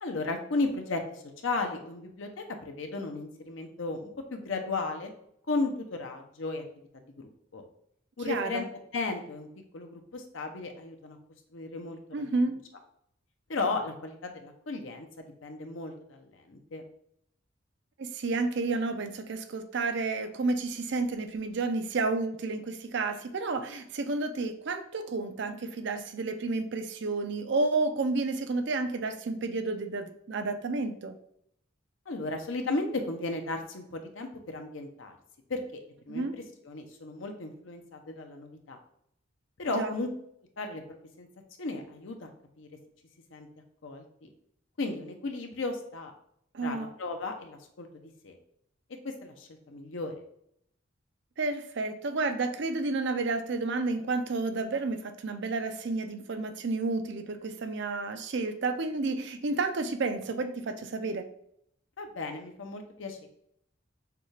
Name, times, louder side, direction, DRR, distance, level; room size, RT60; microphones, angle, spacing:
voice 1, 0.0-5.1 5.5-6.6 6.9-7.6 8.2-8.6 8.9-9.5 9.7-11.2 11.5-12.2 13.5-16.8 32.1-35.1 35.5-35.8 36.1-38.8 39.6-40.1 40.6-41.3 41.6-42.3 42.6-42.7 43.3-43.5 43.8-44.3 44.8-46.1 46.6-48.4 49.0-50.1 62.0-63.3, left 3 dB, 70° left, 4 dB, 0.7 m, -35 dB
voice 2, 8.3-8.6 12.1-12.5 18.0-31.2 36.1-36.3 39.7-39.9 46.5-46.9 51.4-61.2, right 3 dB, 60° right, 8 dB, 0.5 m, -31 dB
6.7 x 2.4 x 3.2 m, 0.72 s
head